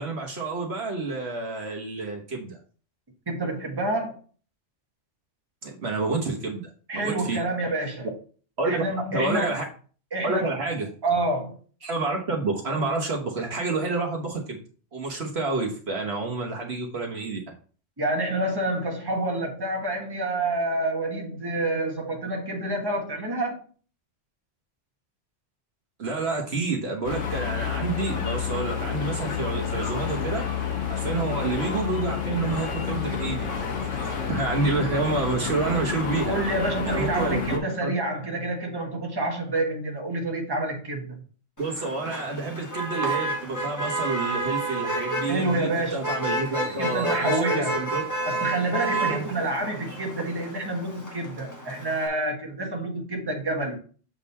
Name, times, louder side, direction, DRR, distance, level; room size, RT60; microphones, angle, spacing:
voice 1, 0.0-2.6 5.6-7.4 8.6-8.8 9.1-9.6 10.2-10.9 11.8-14.6 14.9-17.4 26.0-30.4 30.9-33.5 34.0-36.4 36.8-37.9 41.6-48.0 48.9-49.3, right 3 dB, 60° right, 0 dB, 1.3 m, -29 dB
voice 2, 3.3-4.1 6.9-8.1 8.6-9.5 10.1-10.5 11.0-11.6 18.0-23.6 31.0-31.3 36.3-41.2 45.3-46.0 46.8-47.8 48.3-53.8, right 2 dB, 20° right, 0 dB, 1.3 m, -28 dB
sound 1, 27.0-37.6, left 7 dB, 80° left, 1.5 m, -29 dB
Motor vehicle (road), 41.6-52.1, right 2 dB, 15° left, 1.4 m, -30 dB
7.3 x 3.8 x 4.2 m, 0.41 s
omnidirectional pair, 1.3 m